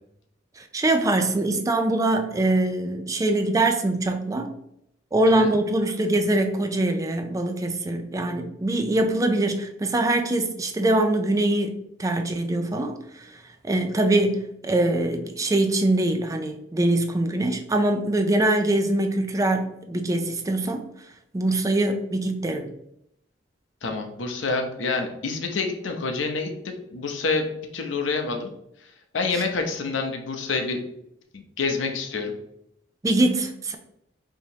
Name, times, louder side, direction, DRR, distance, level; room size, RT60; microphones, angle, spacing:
voice 1, 0.6-4.6 5.1-13.0 13.6-20.8 21.3-22.7 33.0-33.8, right 2 dB, 15° right, 0.3 m, -23 dB
voice 2, 23.8-27.5 27.7-28.5 29.1-30.8 31.3-32.3, left 4 dB, 85° left, 0.7 m, -27 dB
4.8 x 2.8 x 2.7 m
head